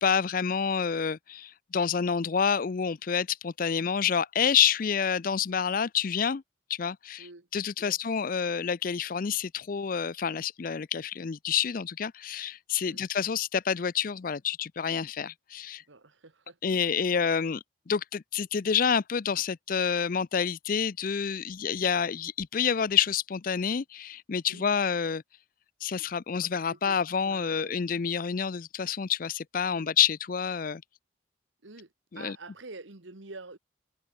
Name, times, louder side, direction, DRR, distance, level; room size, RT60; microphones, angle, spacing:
voice 1, 0.0-6.4 6.7-7.3 7.5-15.8 16.6-25.2 25.8-30.8 32.1-32.4, left 7 dB, 45° left, 0.4 m, -28 dB
voice 2, 7.2-7.5 7.8-8.0 12.9-13.1 15.7-17.3 24.5-24.7 26.4-27.8 29.6-30.0 31.6-33.6, right 3 dB, 75° right, 1.6 m, -48 dB
head